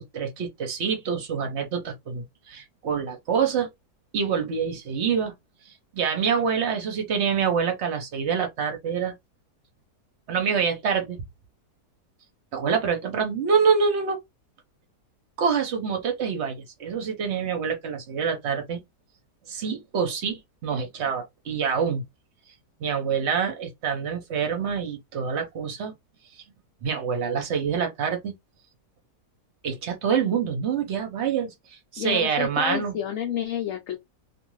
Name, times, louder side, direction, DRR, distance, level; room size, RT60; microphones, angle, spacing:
voice 1, 0.0-3.7 4.1-5.3 5.7-9.1 10.3-11.2 12.5-14.2 15.4-18.8 19.5-22.0 22.8-25.9 26.3-26.4 26.8-28.3 29.6-33.0, right 6 dB, 55° right, 0.8 m, -26 dB
voice 2, 32.0-34.0, left 9 dB, 70° left, 0.8 m, -29 dB
2.5 x 2.5 x 3.0 m
omnidirectional pair, 1.7 m